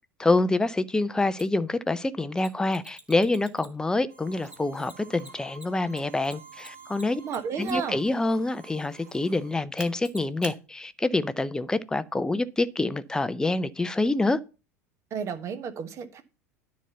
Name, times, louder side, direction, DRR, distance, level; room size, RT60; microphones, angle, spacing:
voice 1, 0.2-7.2 7.6-14.4, left 2 dB, 10° left, 0.6 m, -26 dB
Mechanisms, 1.4-1.5 2.4-3.9 4.5-8.0 9.8-10.6, right 1 dB, 10° right, 1.5 m, -44 dB
sound 1, 4.1-9.6, right 5 dB, 75° right, 1.5 m, -51 dB
voice 2, 7.2-8.0 15.1-16.2, right 7 dB, 35° right, 1.2 m, -32 dB
10.0 x 4.2 x 6.6 m
figure-of-eight pair, 75°, 8 cm